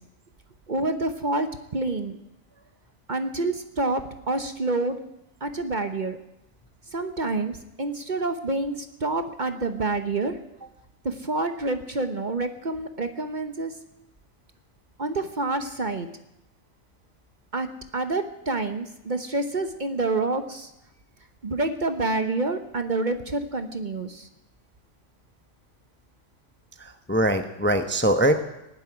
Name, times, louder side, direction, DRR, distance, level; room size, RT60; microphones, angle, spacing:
voice 1, 0.7-2.2 3.1-5.0 5.4-6.2 6.9-10.3 10.6-10.7 11.0-13.7 15.0-16.1 17.5-17.7 17.9-20.7 21.4-24.3, right 2 dB, 40° right, 8 dB, 1.0 m, -28 dB
voice 2, 26.8-28.5, right 1 dB, 10° left, 7 dB, 0.7 m, -23 dB
19.0 x 7.7 x 9.8 m, 0.88 s
omnidirectional pair, 1.3 m